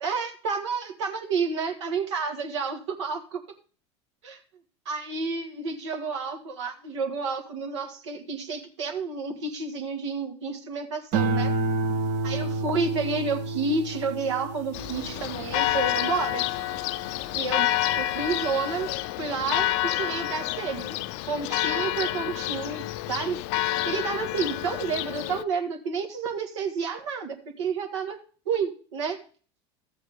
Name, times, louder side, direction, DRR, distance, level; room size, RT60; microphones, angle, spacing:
voice 1, 0.0-3.4 4.2-4.4 4.9-11.5 12.2-16.5 17.3-18.9 19.2-21.0 21.3-23.4 23.8-28.2 28.5-29.2, right 4 dB, 85° right, 5 dB, 1.9 m, -30 dB
sound 1, 11.1-17.6 18.1-18.6, right 2 dB, 60° right, 1.2 m, -30 dB
Church bell, 14.7-25.4, left 14 dB, 65° left, 0.5 m, -29 dB
13.5 x 7.9 x 3.6 m, 0.41 s
hypercardioid pair, 95°, 15 cm